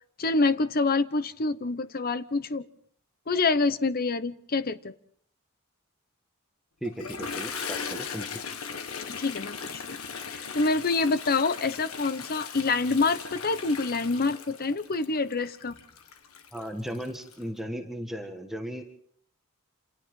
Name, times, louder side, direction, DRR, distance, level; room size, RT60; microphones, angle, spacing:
voice 1, 0.2-2.6 3.3-4.9 9.1-10.0 10.3-15.7, left 3 dB, 45° left, 14 dB, 0.9 m, -26 dB
voice 2, 6.8-8.3 16.5-18.8, equal, ahead, 3 dB, 1.7 m, -36 dB
Toilet flush, 6.9-17.4, left 6 dB, 80° left, 1.6 m, -38 dB
28.0 x 27.5 x 3.8 m, 0.62 s
head